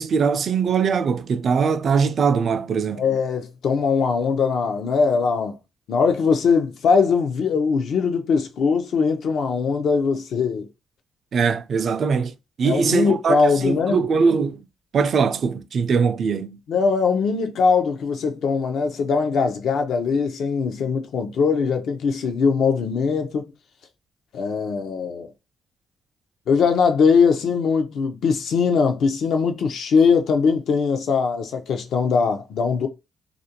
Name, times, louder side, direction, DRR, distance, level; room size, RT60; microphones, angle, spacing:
voice 1, 0.0-3.0 11.3-14.6 14.9-16.6, right 5 dB, 60° right, 0.3 m, -21 dB
voice 2, 3.0-5.6 5.9-10.7 12.6-14.1 16.7-23.4 24.3-25.3 26.5-32.9, left 5 dB, 75° left, 0.5 m, -21 dB
2.5 x 2.1 x 2.8 m
cardioid pair, 80°, 0 cm